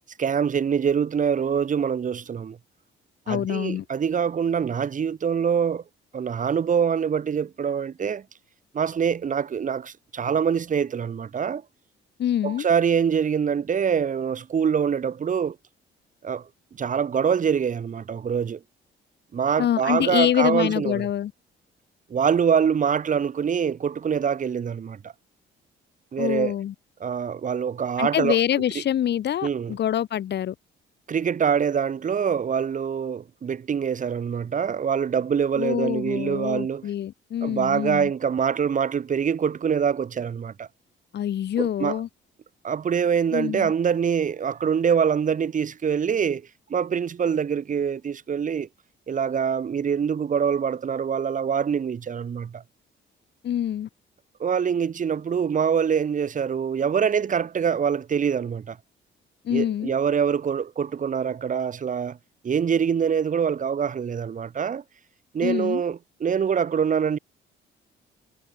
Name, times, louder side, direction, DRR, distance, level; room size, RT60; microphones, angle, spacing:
voice 1, 0.2-2.6 3.3-5.8 6.1-8.2 8.7-11.6 12.4-15.6 16.2-16.4 16.8-18.6 19.3-21.0 22.1-25.0 26.1-26.5 27.0-28.4 29.4-29.7 31.1-36.8 37.4-40.7 41.6-42.0 42.6-46.4 46.7-48.7 49.1-52.6 54.4-58.8 59.5-62.2 62.4-64.8 65.3-67.2, right 7 dB, 40° right, 1.2 m, -24 dB
voice 2, 3.3-3.8 12.2-12.7 19.6-21.3 26.2-26.7 28.0-30.5 35.6-38.1 41.1-42.1 43.3-43.7 53.4-53.9 59.4-59.9 65.4-65.8, left 10 dB, 60° left, 1.0 m, -25 dB
cardioid pair, 90°, 20 cm